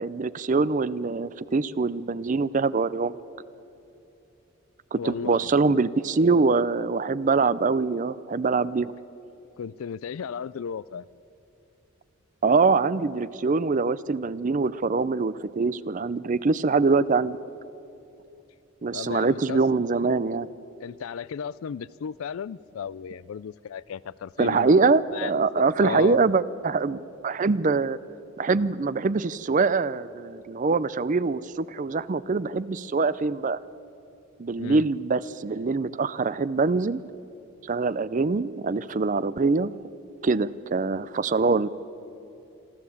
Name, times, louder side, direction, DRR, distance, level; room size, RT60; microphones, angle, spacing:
voice 1, 0.0-3.1 4.9-8.9 12.4-17.4 18.8-20.5 24.4-28.0 28.4-33.6 34.4-37.0 37.7-39.7 40.2-41.7, right 4 dB, 40° right, 17 dB, 0.4 m, -24 dB
voice 2, 5.0-5.5 9.6-11.0 18.9-19.6 20.8-24.7 25.1-26.2 34.6-34.9, left 7 dB, 80° left, 18 dB, 0.4 m, -34 dB
27.0 x 13.0 x 8.5 m, 2.9 s
head